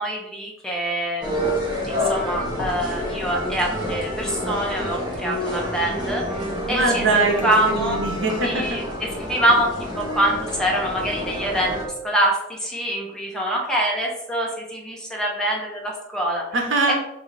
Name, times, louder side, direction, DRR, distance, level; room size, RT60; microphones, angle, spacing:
voice 1, 0.0-1.6 1.9-6.2 6.7-7.0 7.4-8.0 8.4-16.5 16.9-17.0, right 1 dB, 5° left, -2 dB, 0.8 m, -25 dB
sound 1, 1.2-11.8, left 1 dB, 25° right, 1.2 m, -28 dB
voice 2, 6.7-8.8 16.5-16.9, right 3 dB, 85° right, 2 dB, 0.9 m, -22 dB
3.8 x 2.7 x 4.7 m, 0.87 s
head